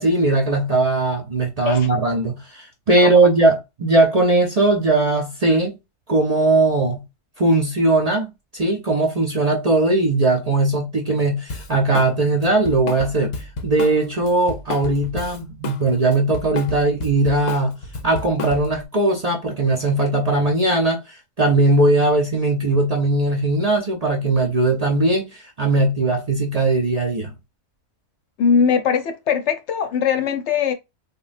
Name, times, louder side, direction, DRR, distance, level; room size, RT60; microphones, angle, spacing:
voice 1, 0.0-5.8 6.1-7.0 7.4-13.3 13.6-17.7 18.0-27.3, right 2 dB, 45° right, 0.5 m, -19 dB
Drum kit, 11.5-12.1 12.4-15.8 16.1-18.9, left 3 dB, 50° left, 0.5 m, -31 dB
voice 2, 28.4-30.7, left 6 dB, 70° left, 0.9 m, -20 dB
3.6 x 2.1 x 2.4 m
omnidirectional pair, 1.2 m